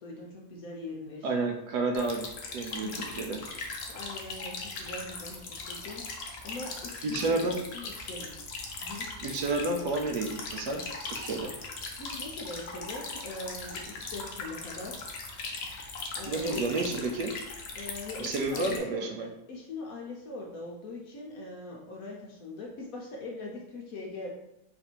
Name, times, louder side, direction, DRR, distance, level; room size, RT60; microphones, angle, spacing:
voice 1, 0.0-1.3 2.8-3.2 3.9-6.0 6.4-8.3 8.8-9.1 12.0-15.0 16.1-16.7 17.7-24.3, left 2 dB, 65° left, -2 dB, 0.9 m, -41 dB
voice 2, 1.2-2.3 2.5-3.4 7.0-7.6 9.2-11.5 16.3-17.3 18.2-19.3, right 3 dB, 70° right, 3 dB, 1.1 m, -30 dB
sound 1, 1.9-18.8, left 3 dB, 85° left, 0.5 m, -39 dB
4.1 x 2.6 x 4.3 m, 0.85 s
omnidirectional pair, 2.0 m